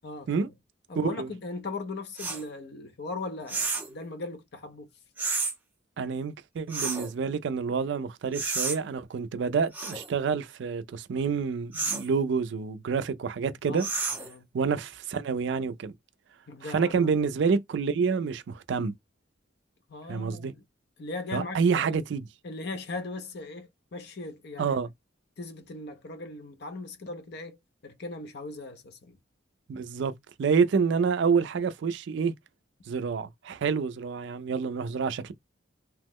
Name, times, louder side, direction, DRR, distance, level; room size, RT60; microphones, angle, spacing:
voice 1, 0.0-0.5 0.9-4.9 13.7-13.9 14.2-14.5 16.5-17.1 19.9-20.5 21.0-22.0 22.4-24.8 25.4-27.6 27.8-29.1, left 3 dB, 55° left, 0.5 m, -38 dB
voice 2, 1.0-1.3 6.0-13.8 14.5-15.9 16.7-18.9 20.1-20.5 21.3-22.2 24.6-24.9 29.7-30.1 30.4-32.3 32.9-35.3, right 5 dB, 60° right, 0.3 m, -28 dB
sound 1, 2.2-2.4 3.5-3.9 5.2-5.5 6.7-7.1 8.3-8.8 9.7-10.1 11.7-12.1 13.8-14.3, right 4 dB, 10° right, 0.5 m, -31 dB
2.9 x 2.0 x 3.5 m
head